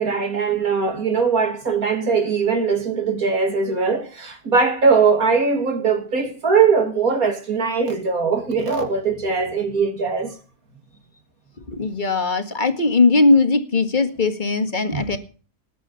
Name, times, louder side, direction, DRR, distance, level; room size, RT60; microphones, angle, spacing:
voice 1, 0.0-10.4 14.9-15.1, right 5 dB, 75° right, 3.2 m, -20 dB
voice 2, 11.6-15.2, left 3 dB, 30° left, 1.9 m, -19 dB
19.5 x 8.5 x 5.9 m
omnidirectional pair, 1.5 m